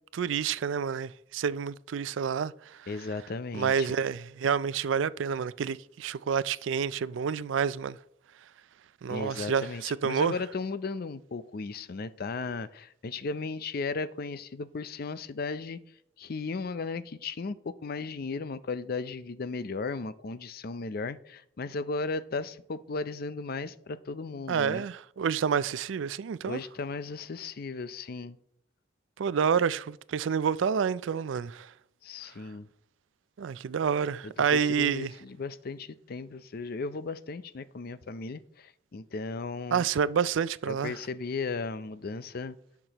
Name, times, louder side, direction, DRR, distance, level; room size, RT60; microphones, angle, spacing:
voice 1, 0.1-2.9 3.5-8.0 9.0-10.3 24.5-26.6 29.2-31.7 33.4-35.1 39.7-41.0, right 7 dB, 85° right, 0.4 m, -28 dB
voice 2, 2.9-3.9 9.1-15.8 16.2-24.9 26.4-28.4 32.0-32.7 34.5-39.9 40.7-42.6, left 4 dB, 55° left, 0.5 m, -36 dB
17.5 x 6.0 x 3.0 m
head